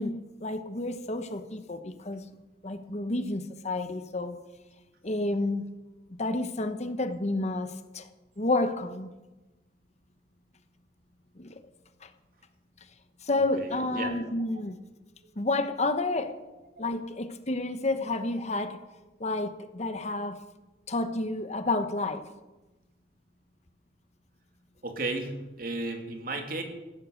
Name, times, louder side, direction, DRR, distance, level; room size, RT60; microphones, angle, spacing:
voice 1, 0.0-2.2 2.6-4.4 5.0-5.7 6.2-8.1 8.4-9.1 11.4-11.6 12.0-12.1 13.2-14.8 15.4-16.4 16.8-18.8 19.2-20.4 20.9-22.3, left 2 dB, 40° left, 10 dB, 1.0 m, -30 dB
voice 2, 13.3-14.1 24.8-26.6, right 2 dB, 55° right, 4 dB, 2.6 m, -34 dB
15.5 x 13.0 x 6.5 m, 1.1 s
head